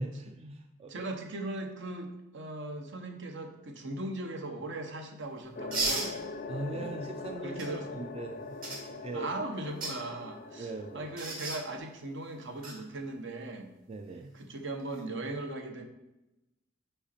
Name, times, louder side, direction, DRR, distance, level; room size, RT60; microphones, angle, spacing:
voice 1, 0.0-1.1 6.5-9.3 10.5-11.1 13.9-14.3, right 2 dB, 30° right, 5 dB, 0.4 m, -40 dB
voice 2, 0.9-6.2 6.7-6.9 7.4-7.9 9.1-13.7 14.3-15.9, right 2 dB, 65° right, 5 dB, 0.8 m, -38 dB
sound 1, 5.5-11.8, left 4 dB, 45° left, 0.5 m, -42 dB
sound 2, 5.7-6.1 7.6-7.7 8.6-8.8 9.6-9.9 11.2-11.6 12.6-12.7 14.8-15.0, right 3 dB, 50° right, 1.7 m, -33 dB
5.6 x 5.0 x 4.2 m, 0.94 s
head